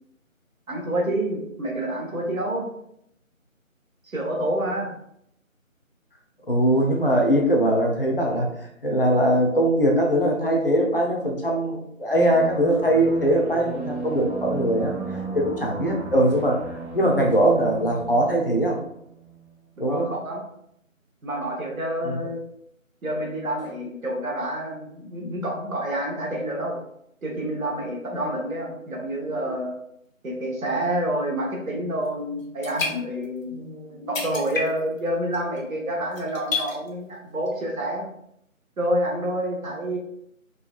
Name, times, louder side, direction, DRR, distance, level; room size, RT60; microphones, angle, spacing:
voice 1, 0.7-2.7 4.0-4.9 19.8-20.4 21.2-22.4 23.0-26.8 27.2-29.7 30.2-38.1 38.8-40.0, right 1 dB, 80° right, -1 dB, 1.1 m, -28 dB
voice 2, 6.5-8.5 8.8-14.9 15.3-18.8 19.8-20.1 22.0-22.2, right 1 dB, 45° left, 0 dB, 0.6 m, -21 dB
sound 1, 12.1-19.5, right 3 dB, 55° right, 0.7 m, -35 dB
sound 2, 32.0-32.1 32.4-33.4 33.8-33.9 34.1-35.0 35.3-35.6 36.1-36.9 37.5-37.6, left 3 dB, 70° left, 0.9 m, -30 dB
3.7 x 2.2 x 2.4 m, 0.74 s
figure-of-eight pair, 170°, 41 cm